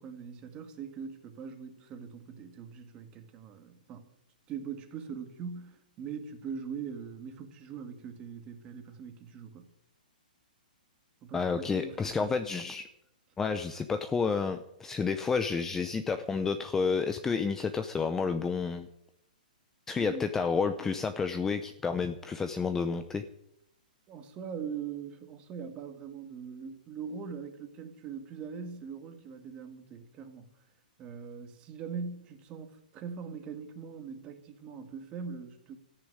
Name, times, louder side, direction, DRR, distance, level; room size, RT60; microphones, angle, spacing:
voice 1, 0.0-4.1 4.5-9.7 11.2-12.4 19.9-20.3 24.1-30.5 31.0-35.8, right 6 dB, 20° right, 1.9 m, -42 dB
voice 2, 11.3-12.9 13.4-18.9 19.9-23.2, left 5 dB, 10° left, 0.6 m, -30 dB
14.0 x 9.8 x 9.4 m
hypercardioid pair, 160°, 5 cm